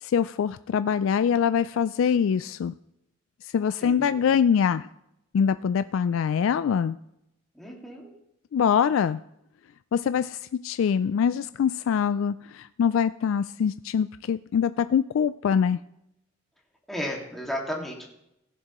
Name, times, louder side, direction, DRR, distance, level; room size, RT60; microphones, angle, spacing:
voice 1, 0.0-2.7 3.4-4.9 5.3-7.0 8.5-9.2 9.9-15.8, left 7 dB, 75° left, 13 dB, 0.3 m, -24 dB
voice 2, 3.8-4.3 7.5-8.1 16.9-18.1, equal, ahead, -2 dB, 2.0 m, -34 dB
16.5 x 11.0 x 3.0 m, 0.83 s
head